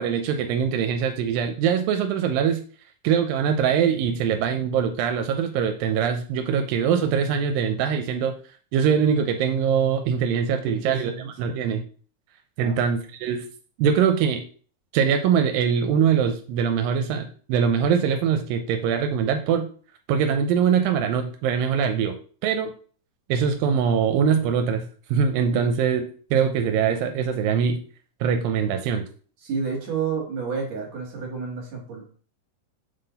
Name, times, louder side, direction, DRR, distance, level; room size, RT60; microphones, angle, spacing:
voice 1, 0.0-2.6 3.0-8.3 8.7-11.1 11.4-11.8 12.6-13.5 13.8-14.5 14.9-19.7 20.1-22.7 23.3-26.1 26.3-27.8 28.2-29.1, right 7 dB, 85° right, 6 dB, 2.3 m, -23 dB
voice 2, 10.6-11.6 12.6-12.8 25.5-25.7 29.4-32.1, right 5 dB, 55° right, 0 dB, 2.4 m, -31 dB
6.7 x 3.8 x 3.9 m, 0.43 s
omnidirectional pair, 4.1 m